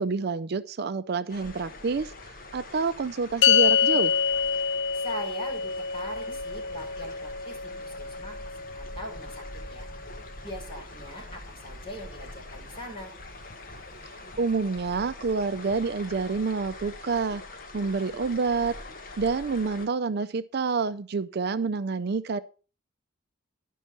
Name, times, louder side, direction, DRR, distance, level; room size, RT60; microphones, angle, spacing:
voice 1, 0.0-2.1 2.5-4.2 14.4-17.4 17.7-18.7 19.2-22.4, right 4 dB, 55° right, 14 dB, 0.4 m, -28 dB
sound 1, 1.3-19.9, left 2 dB, 45° left, 1.4 m, -44 dB
sound 2, 3.4-10.0, left 7 dB, 60° left, 0.4 m, -27 dB
voice 2, 4.9-8.4 8.7-9.9 10.4-13.1, left 1 dB, 25° left, -2 dB, 4.7 m, -41 dB
11.5 x 5.4 x 5.9 m, 0.37 s
head